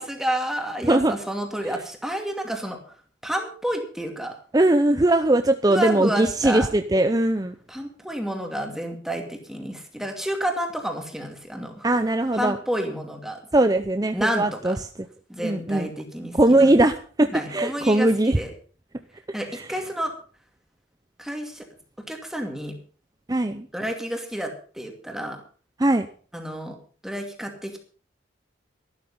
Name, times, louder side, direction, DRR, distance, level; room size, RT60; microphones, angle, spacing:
voice 1, 0.0-2.8 3.2-4.3 5.7-6.7 7.7-11.9 12.3-13.4 14.1-14.8 15.3-16.7 17.3-18.5 19.3-20.1 21.2-21.7 22.1-22.8 23.7-25.4 26.3-26.8 27.0-27.8, right 1 dB, ahead, 3 dB, 2.5 m, -30 dB
voice 2, 4.5-7.5 11.8-12.6 13.5-14.8 15.4-15.9 16.4-18.4 19.5-19.7 23.3-23.7 25.8-26.1, right 1 dB, 20° right, 8 dB, 0.6 m, -20 dB
13.0 x 12.5 x 5.5 m, 0.41 s
head